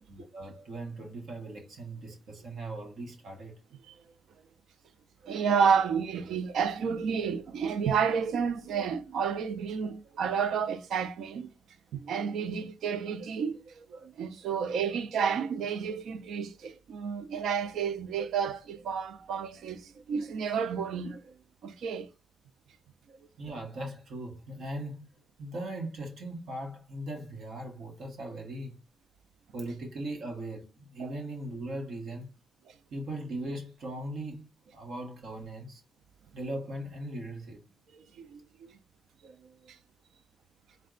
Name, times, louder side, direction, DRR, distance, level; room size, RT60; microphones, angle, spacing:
voice 1, 0.1-3.5 23.4-25.1 25.4-28.7 29.5-32.3 32.9-34.5 34.7-35.8 36.3-37.6, right 1 dB, 75° right, 1.1 m, -39 dB
voice 2, 5.2-11.5 11.9-21.2 21.6-22.1 31.0-31.1 38.2-38.4 39.2-39.3, right 6 dB, 90° right, 0.5 m, -30 dB
4.2 x 2.2 x 3.7 m
cardioid pair, 120°, 0 cm